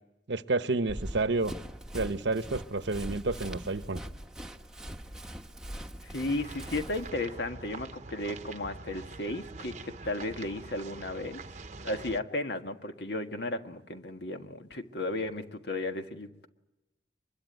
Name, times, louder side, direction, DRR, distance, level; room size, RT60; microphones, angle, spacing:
voice 1, 0.3-1.5 1.9-4.0, right 3 dB, 75° right, 0.9 m, -30 dB
Run, 0.9-7.1, equal, 5° right, 1.1 m, -42 dB
voice 2, 6.0-11.4 11.8-16.5, left 2 dB, 65° left, 1.7 m, -34 dB
sound 1, 6.4-12.2, right 3 dB, 40° right, 0.9 m, -45 dB
24.5 x 22.0 x 9.2 m
head